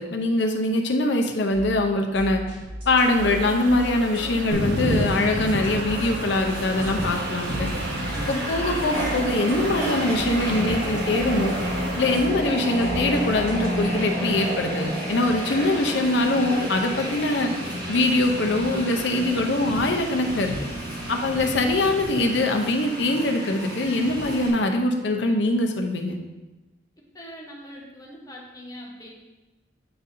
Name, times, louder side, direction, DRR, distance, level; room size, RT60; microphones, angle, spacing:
voice 1, 0.0-2.4 2.9-7.7 8.3-11.5 12.0-17.5 17.9-20.5 21.1-26.2, left 2 dB, 70° left, 3 dB, 0.7 m, -23 dB
sound 1, 1.5-13.7, equal, 30° right, 1.8 m, -38 dB
sound 2, 3.0-12.3, right 4 dB, 80° right, 0.5 m, -36 dB
Train, 4.5-24.5, equal, 60° right, 1.7 m, -30 dB
voice 2, 27.1-29.2, equal, 20° left, -2 dB, 1.0 m, -42 dB
8.6 x 4.0 x 2.7 m, 1.1 s
head